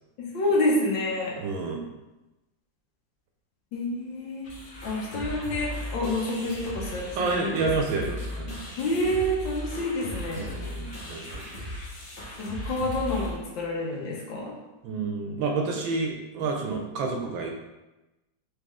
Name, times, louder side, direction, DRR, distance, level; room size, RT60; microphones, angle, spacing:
voice 1, 0.3-1.3 3.7-4.5 4.8-7.7 8.8-10.5 12.4-14.5, left 1 dB, 70° left, -3 dB, 1.6 m, -28 dB
voice 2, 1.4-1.8 7.1-8.6 10.4-11.7 14.8-17.5, right 4 dB, 75° right, 2 dB, 1.3 m, -29 dB
sound 1, 4.4-13.3, left 1 dB, 45° left, 0.9 m, -37 dB
4.1 x 3.3 x 3.5 m, 1.0 s
omnidirectional pair, 2.3 m